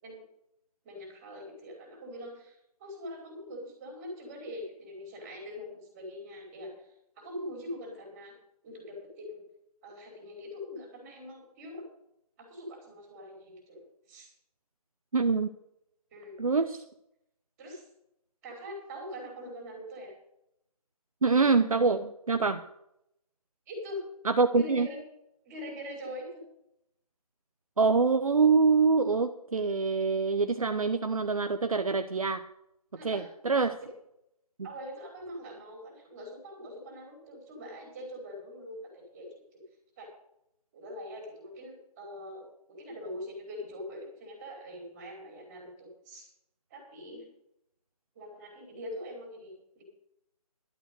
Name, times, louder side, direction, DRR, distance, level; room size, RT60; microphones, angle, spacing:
voice 1, 0.8-6.9 7.2-8.3 8.6-9.4 9.8-11.8 12.4-14.3 16.1-16.4 17.6-17.8 18.4-20.1 23.7-24.0 24.6-25.0 25.4-26.4 33.0-33.3 34.6-39.6 40.0-40.1 40.7-46.3 46.7-47.2 48.1-49.8, left 1 dB, 20° right, 1 dB, 5.1 m, -43 dB
voice 2, 15.1-15.5 16.4-16.8 21.2-22.6 24.2-24.9 27.8-32.4 33.0-33.8, right 4 dB, 60° right, 9 dB, 0.9 m, -25 dB
12.0 x 9.2 x 6.7 m, 0.79 s
figure-of-eight pair, 150°, 20 cm